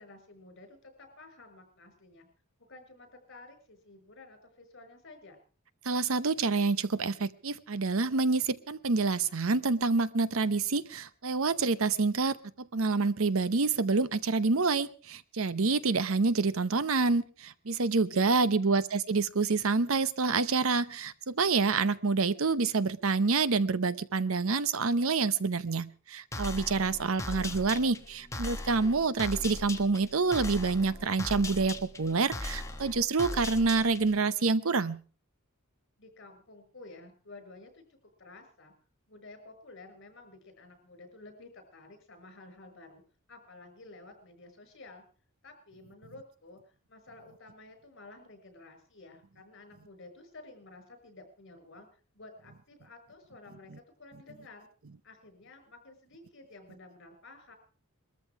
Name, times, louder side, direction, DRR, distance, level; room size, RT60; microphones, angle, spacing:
voice 1, 0.0-2.3 2.7-5.4 18.1-18.7 36.0-38.7 39.1-43.0 43.3-45.0 45.4-51.9 52.1-53.7 54.0-54.7 55.0-57.5, left 2 dB, 55° left, 7 dB, 5.6 m, -52 dB
voice 2, 5.8-35.0, right 4 dB, 70° right, 16 dB, 0.8 m, -27 dB
sound 1, 26.3-34.2, left 2 dB, 15° left, 1.2 m, -39 dB
21.0 x 14.0 x 4.8 m, 0.39 s
head